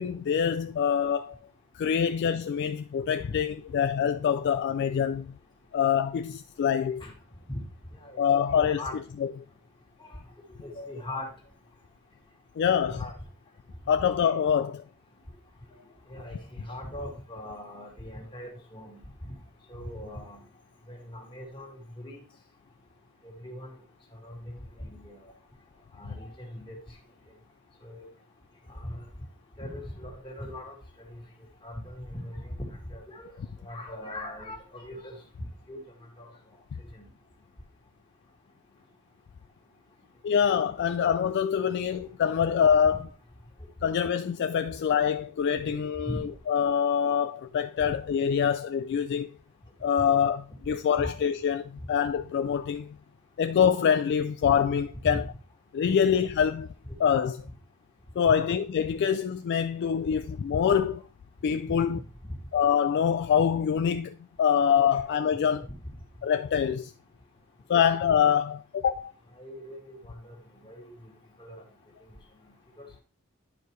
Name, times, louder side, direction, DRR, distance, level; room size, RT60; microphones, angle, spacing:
voice 1, 0.0-1.4 1.7-5.4 5.7-7.0 8.2-8.8 9.2-9.3 12.6-13.0 13.9-14.8 40.2-43.1 43.8-49.4 49.8-53.0 53.4-55.2 55.7-56.7 57.0-57.5 58.2-61.0 61.4-62.0 62.5-65.7 66.2-66.9 67.7-69.1, left 8 dB, 50° left, 0.3 m, -25 dB
voice 2, 8.5-9.0 10.0-10.2 10.6-11.3 12.8-13.1 16.1-19.0 19.7-20.4 20.9-22.2 23.2-23.7 24.2-25.2 26.0-26.8 27.8-28.1 28.7-29.1 29.6-30.7 31.1-31.2 31.6-33.3 33.6-35.2 35.7-35.8 36.2-36.3 36.9-37.1 46.1-46.2 50.0-50.1 55.0-55.1 56.0-56.1 58.4-58.5 61.6-61.8 64.9-65.0 67.7-67.9 69.4-70.4 70.6-70.9 71.4-71.6 72.8-72.9, left 1 dB, 20° left, 1.9 m, -40 dB
10.0 x 4.6 x 3.1 m
head